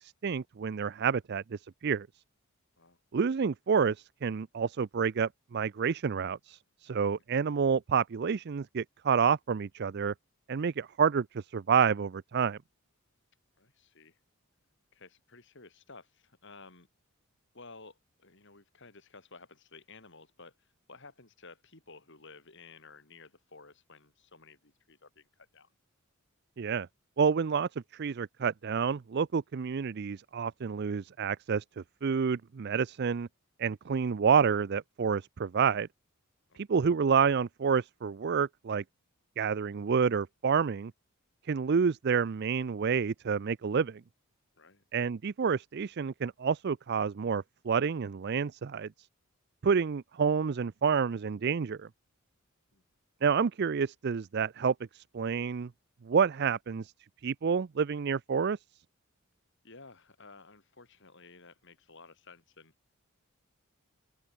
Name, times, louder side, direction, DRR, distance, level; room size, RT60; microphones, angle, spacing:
voice 1, 0.0-2.1 3.1-10.1 10.5-12.6 26.6-26.9 27.2-33.3 33.6-35.9 36.6-38.8 39.4-40.9 41.4-44.0 44.9-49.1 49.6-51.9 53.2-55.7 56.0-56.9 57.2-58.6, right 6 dB, 50° right, 0.4 m, -29 dB
voice 2, 13.6-14.2 14.9-16.9 17.5-25.7 36.5-36.6 44.6-44.8 52.7-52.8 59.6-62.7, left 3 dB, 55° left, 3.7 m, -54 dB
open air
head